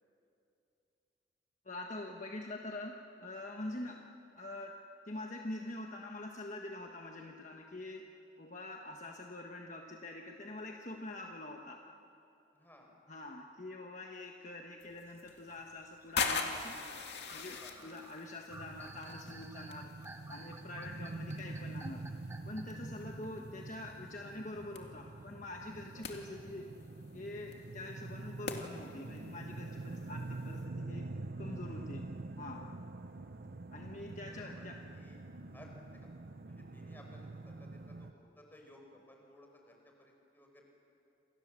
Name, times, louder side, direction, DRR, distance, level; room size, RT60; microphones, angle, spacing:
voice 1, 1.6-4.0 4.4-4.7 5.1-8.1 8.4-11.8 13.1-17.0 17.3-19.9 20.3-22.0 22.5-26.7 27.1-31.1 31.4-32.1 32.4-32.7 33.7-34.8, left 2 dB, 40° left, 1 dB, 1.3 m, -45 dB
voice 2, 12.5-13.0 17.6-17.9 23.0-23.1 25.9-26.0 31.6-32.0 34.3-35.3 35.5-35.7 36.4-40.6, left 1 dB, 10° left, 1 dB, 4.9 m, -59 dB
sound 1, 14.8-30.6, left 5 dB, 65° left, 2.3 m, -44 dB
sound 2, 15.1-22.8, right 2 dB, 15° right, 1.5 m, -54 dB
sound 3, 18.5-38.1, right 2 dB, 55° right, 0.7 m, -46 dB
28.0 x 27.5 x 7.6 m, 2.8 s
head